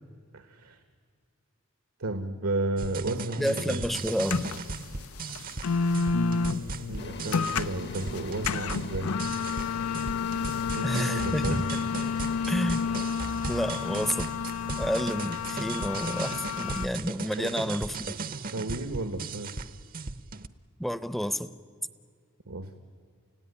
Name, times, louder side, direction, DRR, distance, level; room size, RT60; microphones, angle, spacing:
voice 1, 0.3-0.8 2.0-3.8 6.9-9.2 10.7-11.6 17.4-17.6 18.5-19.6 22.5-22.8, right 2 dB, 75° right, 9 dB, 1.3 m, -33 dB
sound 1, 2.8-20.5, right 4 dB, 40° right, 0.8 m, -37 dB
voice 2, 3.4-4.4 10.8-11.8 12.5-12.9 13.5-14.3 14.8-18.1 20.8-21.5, equal, ahead, 14 dB, 0.7 m, -30 dB
sound 2, 3.9-16.9, left 5 dB, 85° left, 0.6 m, -31 dB
sound 3, 7.0-14.9, left 3 dB, 50° left, 1.0 m, -43 dB
29.5 x 16.5 x 9.8 m, 2.2 s
head